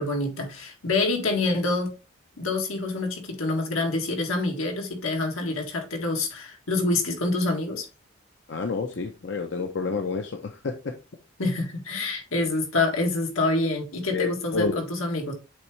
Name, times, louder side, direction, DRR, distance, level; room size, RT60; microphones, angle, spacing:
voice 1, 0.0-1.9 2.4-7.9 11.4-15.3, left 2 dB, 85° left, 1.8 m, -26 dB
voice 2, 8.5-10.9 14.1-14.8, left 4 dB, 55° left, 0.6 m, -29 dB
8.5 x 3.5 x 3.1 m
head